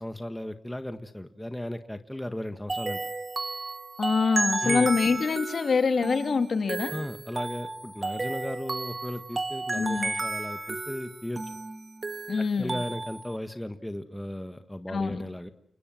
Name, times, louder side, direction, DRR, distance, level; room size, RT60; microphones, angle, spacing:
voice 1, 0.0-3.0 4.6-4.9 6.9-11.4 12.4-15.5, left 1 dB, 5° left, 9 dB, 1.6 m, -36 dB
sound 1, 2.7-13.4, right 3 dB, 30° right, 1.8 m, -33 dB
voice 2, 4.0-6.9 9.7-10.1 12.3-12.8 14.9-15.2, left 5 dB, 55° left, 8 dB, 2.6 m, -25 dB
30.0 x 20.5 x 7.7 m, 0.62 s
wide cardioid pair, 95°, 0 cm